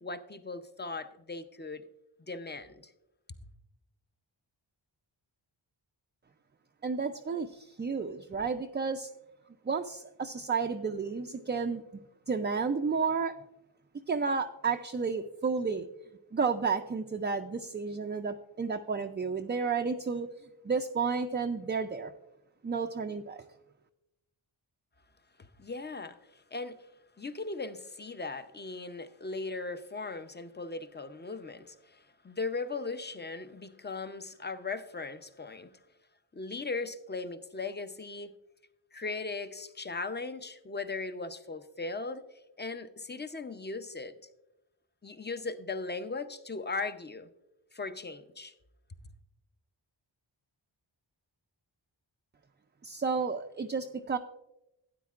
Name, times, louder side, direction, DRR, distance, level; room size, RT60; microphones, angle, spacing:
voice 1, 0.0-1.9 2.2-2.9 3.3-3.5 25.4-26.9 27.2-35.7 36.3-38.3 38.9-42.2 42.6-44.1 45.0-47.3 47.7-48.5 48.9-49.0, left 3 dB, 20° left, 0.6 m, -38 dB
voice 2, 6.8-9.1 9.6-11.8 12.3-13.3 14.1-15.9 16.3-20.3 20.6-22.1 22.6-23.4 52.8-54.2, right 5 dB, 25° right, 0.4 m, -31 dB
12.5 x 9.3 x 2.4 m
wide cardioid pair, 60°, 47 cm